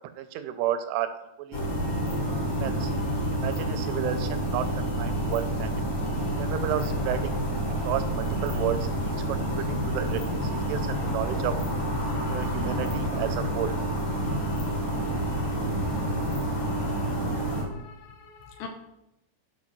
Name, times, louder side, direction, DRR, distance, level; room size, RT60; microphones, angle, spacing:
voice 1, 0.2-1.1 1.4-1.6 2.5-2.9 3.3-5.8 6.4-7.4 7.8-11.5 12.3-13.7, right 11 dB, 85° right, 9 dB, 3.0 m, -32 dB
sound 1, 1.5-17.6, equal, 45° left, 1.9 m, -28 dB
voice 2, 17.3-18.7, left 7 dB, 80° left, 4 dB, 2.8 m, -44 dB
12.0 x 4.6 x 6.0 m, 0.88 s
omnidirectional pair, 5.6 m